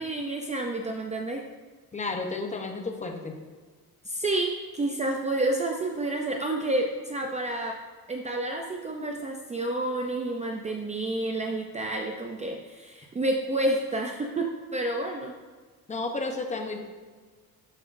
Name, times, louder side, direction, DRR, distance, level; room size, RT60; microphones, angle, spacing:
voice 1, 0.0-1.4 4.1-7.7 8.1-15.3, right 2 dB, 20° right, 2 dB, 0.4 m, -29 dB
voice 2, 1.9-3.4 15.9-16.8, left 3 dB, 20° left, 3 dB, 0.7 m, -32 dB
12.0 x 7.6 x 2.6 m, 1.5 s
cardioid pair, 175°, 37 cm